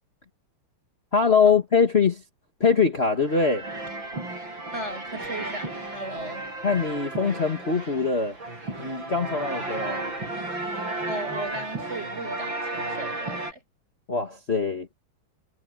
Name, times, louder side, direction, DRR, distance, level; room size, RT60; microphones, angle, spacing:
voice 1, 1.1-2.2 2.6-3.7 6.6-8.4 8.8-10.1 14.1-14.9, left 5 dB, 30° left, 2.1 m, -23 dB
sound 1, 3.2-13.5, right 2 dB, 65° right, 8.9 m, -33 dB
voice 2, 4.7-6.5 11.1-13.6, right 1 dB, 30° right, 7.8 m, -36 dB
omnidirectional pair, 2.2 m